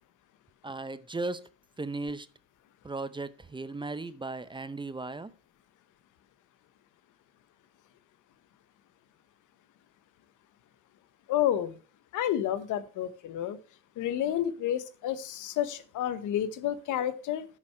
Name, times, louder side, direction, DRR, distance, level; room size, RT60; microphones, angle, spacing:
voice 1, 0.6-1.5 1.8-2.3 2.8-5.3, right 3 dB, 15° right, 0.6 m, -36 dB
voice 2, 11.3-11.8 12.1-13.6 14.0-17.5, left 11 dB, 85° left, 1.0 m, -30 dB
10.0 x 6.1 x 4.4 m
cardioid pair, 90°, 30 cm